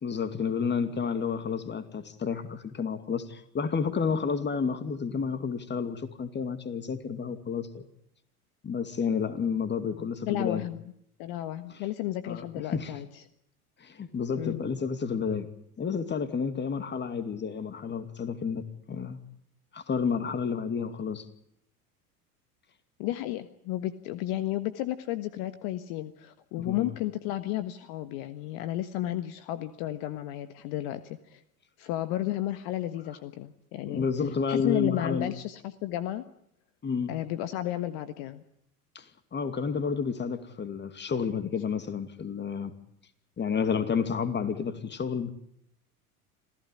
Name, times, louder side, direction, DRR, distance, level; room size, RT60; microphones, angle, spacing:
voice 1, 0.0-7.8 8.6-10.7 12.3-12.4 12.7-12.9 13.8-15.5 15.8-19.2 19.7-21.3 26.6-26.9 33.8-35.3 36.8-37.1 38.9-39.1 39.3-42.7 43.4-45.3, left 6 dB, 25° left, 11 dB, 2.6 m, -30 dB
voice 2, 10.0-10.8 11.2-13.2 14.3-14.6 23.0-31.4 31.8-34.0 34.5-36.2 37.1-38.4, left 14 dB, 50° left, 12 dB, 1.5 m, -33 dB
27.0 x 16.0 x 10.0 m, 0.73 s
hypercardioid pair, 85°, 46 cm